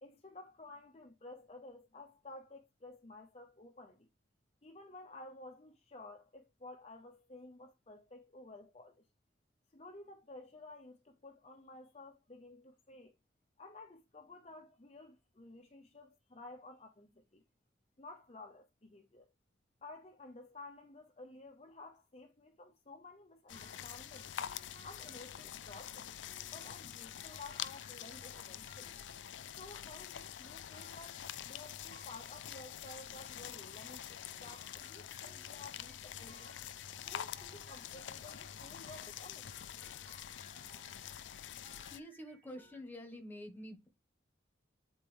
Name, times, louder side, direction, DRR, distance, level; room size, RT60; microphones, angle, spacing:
voice 1, 0.0-4.1 4.6-9.0 9.7-13.1 13.6-17.4 18.0-19.3 19.8-24.3 24.8-26.2 26.5-29.0 29.6-36.5 37.1-39.5, left 2 dB, 35° left, 0.7 m, -53 dB
sound 1, 23.5-42.0, left 10 dB, 75° left, 0.4 m, -46 dB
sound 2, 23.5-42.8, equal, 65° right, 4.3 m, -62 dB
voice 2, 41.9-43.9, left 1 dB, 10° left, 1.4 m, -48 dB
8.6 x 4.3 x 3.4 m
head